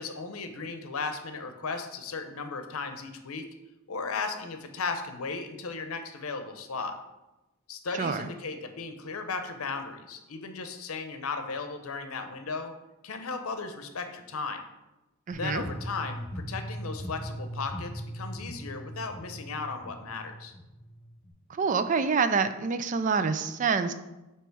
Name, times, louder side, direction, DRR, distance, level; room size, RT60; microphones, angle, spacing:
voice 1, 0.0-3.5 3.9-7.0 7.7-12.7 13.0-14.6 15.3-20.5, left 4 dB, 80° left, 7 dB, 0.7 m, -36 dB
voice 2, 7.9-8.3 15.3-15.7 21.5-23.9, right 5 dB, 35° right, 11 dB, 0.3 m, -27 dB
sound 1, 15.3-21.3, equal, 10° left, 1.2 m, -39 dB
7.9 x 3.0 x 4.6 m, 1.0 s
head